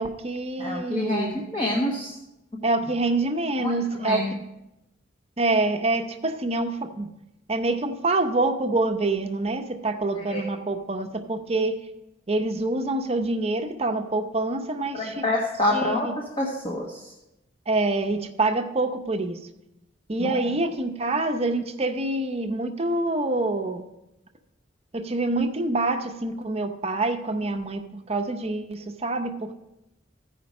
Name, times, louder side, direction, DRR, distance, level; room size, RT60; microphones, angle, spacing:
voice 1, 0.0-1.4 2.6-4.2 5.4-7.1 7.5-11.8 12.3-15.1 15.7-16.1 17.7-19.4 20.1-23.8 24.9-29.5, right 2 dB, 30° right, 6 dB, 0.7 m, -26 dB
voice 2, 0.6-2.2 3.6-4.3 10.1-10.4 14.9-17.1 20.2-20.4, left 1 dB, 30° left, -1 dB, 1.3 m, -27 dB
15.0 x 5.1 x 5.3 m, 0.92 s
head